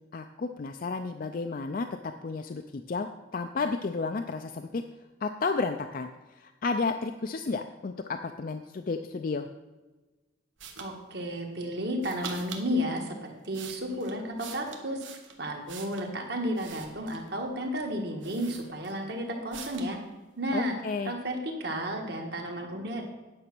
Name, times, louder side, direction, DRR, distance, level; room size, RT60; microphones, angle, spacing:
voice 1, 0.1-4.8 5.2-6.1 6.4-9.5 20.5-21.1, left 4 dB, 45° left, 6 dB, 0.4 m, -32 dB
sound 1, 10.6-10.9 12.0-12.7 13.3-16.1 16.5-17.3 17.9-18.0 18.2-19.1 19.5-19.9, right 6 dB, 75° right, 1.3 m, -44 dB
voice 2, 10.8-13.2 13.4-15.0 15.4-20.0 20.4-20.7 21.0-23.0, equal, 55° right, 2 dB, 1.6 m, -32 dB
9.7 x 6.1 x 6.0 m, 1.2 s
head